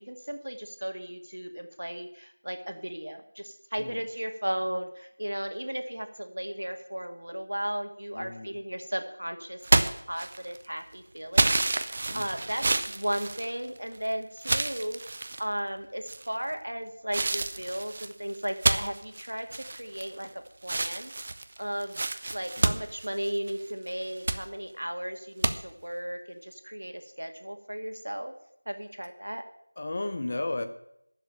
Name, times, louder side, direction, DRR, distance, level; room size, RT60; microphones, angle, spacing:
voice 1, 0.0-21.1 21.6-28.4 28.7-29.4, equal, 80° right, 6 dB, 2.2 m, -35 dB
voice 2, 8.1-8.6 12.1-12.5 22.6-22.8 29.8-30.7, left 2 dB, 25° left, 8 dB, 0.9 m, -35 dB
sound 1, 9.6-10.7 11.3-14.0 14.4-15.4 16.1-16.5 17.1-20.3 20.6-23.6 24.0-24.4 25.4-25.5, right 2 dB, 25° right, 0.6 m, -28 dB
11.0 x 7.3 x 8.5 m, 0.76 s
figure-of-eight pair, 175°, 0 cm